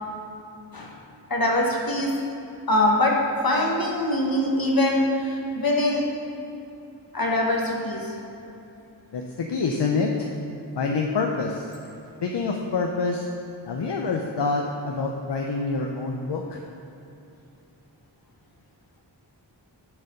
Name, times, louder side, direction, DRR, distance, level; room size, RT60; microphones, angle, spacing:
voice 1, 1.3-2.2 2.7-6.1 7.1-8.1, left 1 dB, 55° left, -1 dB, 1.3 m, -23 dB
voice 2, 9.1-10.1 10.8-11.7 12.2-13.3 13.7-16.6, left 4 dB, 70° left, 1 dB, 0.6 m, -26 dB
8.7 x 4.1 x 6.6 m, 2.9 s
wide cardioid pair, 45°, 43 cm